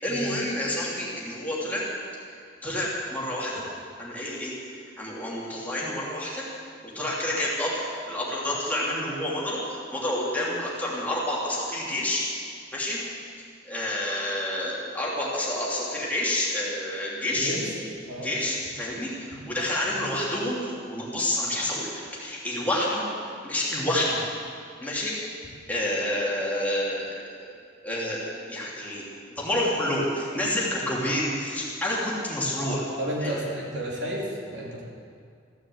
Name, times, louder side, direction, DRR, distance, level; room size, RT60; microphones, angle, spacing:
voice 1, 0.0-1.8 2.6-3.6 4.0-4.5 5.0-6.4 6.8-12.2 12.7-13.0 13.6-17.5 18.2-23.1 23.4-24.2 24.8-25.2 25.7-27.1 27.8-28.2 28.5-29.0 29.4-32.8 33.2-33.4, left 1 dB, 10° left, -6 dB, 3.1 m, -28 dB
voice 2, 17.3-17.7 18.1-18.3 19.8-20.1 33.0-34.8, equal, 65° right, -4 dB, 3.5 m, -32 dB
15.5 x 11.5 x 8.0 m, 2.2 s
head